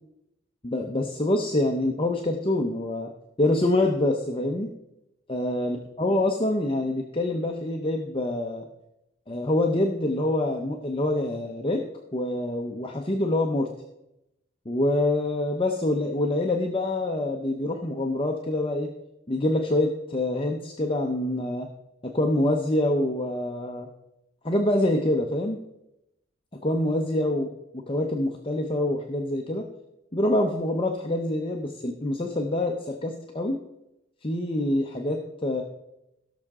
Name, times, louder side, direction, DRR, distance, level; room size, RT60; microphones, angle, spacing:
voice 1, 0.6-3.1 3.4-4.7 5.3-8.6 9.3-11.8 12.1-13.7 14.7-18.9 19.3-21.7 22.0-23.9 24.4-25.6 26.6-27.5 27.9-29.6 30.1-33.6 34.2-35.6, left 1 dB, 25° left, 2 dB, 0.8 m, -26 dB
16.5 x 6.6 x 3.7 m, 0.86 s
head